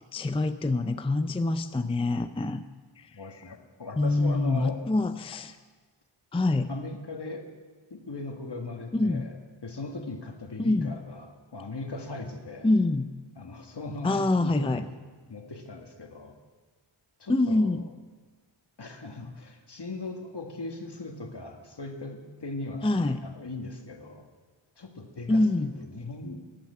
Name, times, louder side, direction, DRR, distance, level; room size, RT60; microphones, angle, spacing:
voice 1, 0.1-2.6 3.0-3.1 4.0-5.5 6.3-6.7 8.9-9.3 10.6-11.0 12.6-13.1 14.0-14.8 17.3-17.8 22.8-23.2 25.3-25.7, left 2 dB, 10° left, 10 dB, 0.5 m, -25 dB
voice 2, 3.1-4.8 6.7-7.5 7.9-12.7 13.4-15.0 15.3-16.4 17.2-17.8 18.8-22.9 23.2-24.3 24.8-26.4, left 2 dB, 60° left, 3 dB, 1.8 m, -39 dB
12.5 x 8.9 x 8.5 m, 1.4 s
wide cardioid pair, 55°, 47 cm